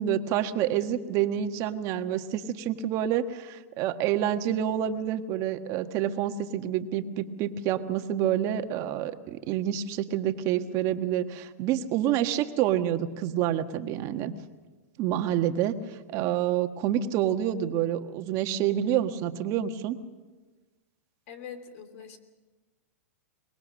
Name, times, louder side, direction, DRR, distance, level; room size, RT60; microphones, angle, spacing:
voice 1, 0.0-14.3 15.0-20.0, right 10 dB, 40° right, 7 dB, 1.5 m, -28 dB
voice 2, 21.3-22.2, left 7 dB, 60° left, 10 dB, 3.0 m, -43 dB
24.0 x 21.5 x 6.4 m, 1.3 s
hypercardioid pair, 130°, 8 cm